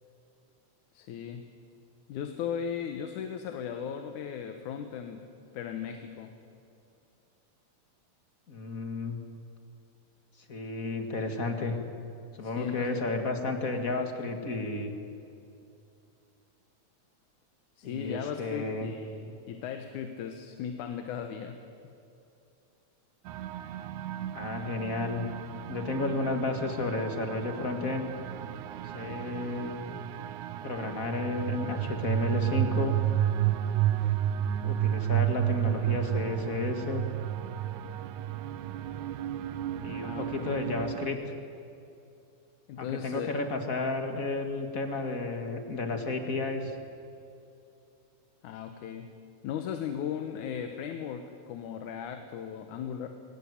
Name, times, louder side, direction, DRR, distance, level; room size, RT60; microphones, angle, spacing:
voice 1, 0.9-1.4 2.1-5.3 5.5-6.4 12.4-13.0 17.8-21.6 40.0-40.6 42.7-43.3 48.4-49.2 49.4-53.1, left 8 dB, 90° left, 7 dB, 2.5 m, -37 dB
voice 2, 8.5-9.2 10.5-11.8 12.4-14.9 17.8-18.9 24.3-25.2 25.7-28.1 28.9-29.7 30.6-33.0 34.6-37.0 39.8-41.4 42.8-46.8, left 3 dB, 30° left, 5 dB, 2.0 m, -32 dB
sound 1, 23.3-41.1, right 12 dB, 90° right, 2.2 m, -32 dB
22.0 x 17.5 x 9.9 m, 2.6 s
omnidirectional pair, 3.4 m